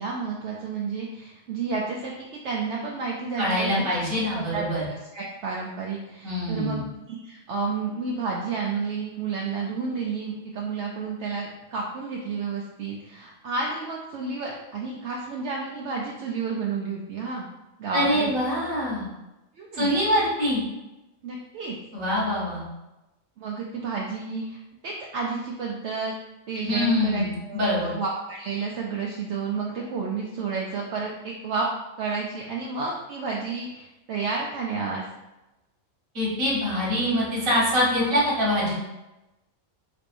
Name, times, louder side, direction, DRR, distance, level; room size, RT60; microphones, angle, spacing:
voice 1, 0.0-3.9 4.4-4.6 4.9-6.8 7.1-17.5 17.8-18.3 19.6-19.9 21.2-21.7 23.4-26.1 26.5-31.7 32.0-35.0, right 4 dB, 65° right, -2 dB, 0.8 m, -31 dB
voice 2, 3.4-4.8 6.2-6.8 17.9-19.0 19.7-20.6 21.9-22.6 26.6-27.9 36.2-38.7, left 1 dB, 90° right, -6 dB, 1.8 m, -24 dB
4.2 x 3.4 x 2.5 m, 1.0 s
omnidirectional pair, 1.4 m